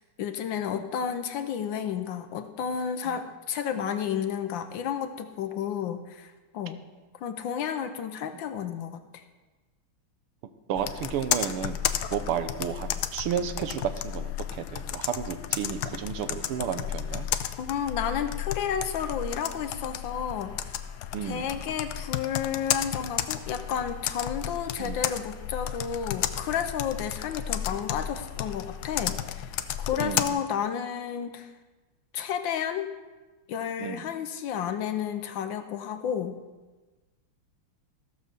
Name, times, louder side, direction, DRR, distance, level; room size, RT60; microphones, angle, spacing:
voice 1, 0.2-6.8 7.2-9.0 17.6-20.7 21.2-29.5 29.8-31.5 32.1-32.9 33.5-36.4, left 8 dB, 70° left, 8 dB, 1.3 m, -31 dB
voice 2, 10.7-11.8 12.1-17.3 21.1-21.5 24.8-25.0 30.0-30.3 33.8-34.1, right 8 dB, 85° right, 10 dB, 1.7 m, -32 dB
Computer keyboard, 10.8-30.3, left 10 dB, 85° left, 0.9 m, -33 dB
15.0 x 6.6 x 6.7 m, 1.2 s
omnidirectional pair, 2.4 m